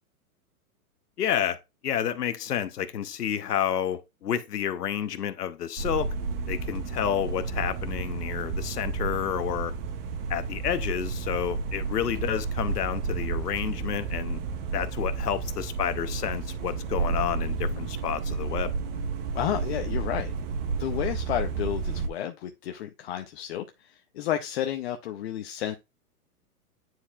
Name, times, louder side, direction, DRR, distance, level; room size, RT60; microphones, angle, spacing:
voice 1, 1.2-1.6 1.8-6.1 6.5-9.7 10.3-14.4 14.7-18.7, left 9 dB, 85° left, 1.0 m, -30 dB
sound 1, 5.8-22.1, right 4 dB, 40° right, 0.9 m, -31 dB
voice 2, 19.3-20.3 20.8-25.8, left 11 dB, 45° left, 0.6 m, -31 dB
9.5 x 4.4 x 2.4 m
hypercardioid pair, 140°, 46 cm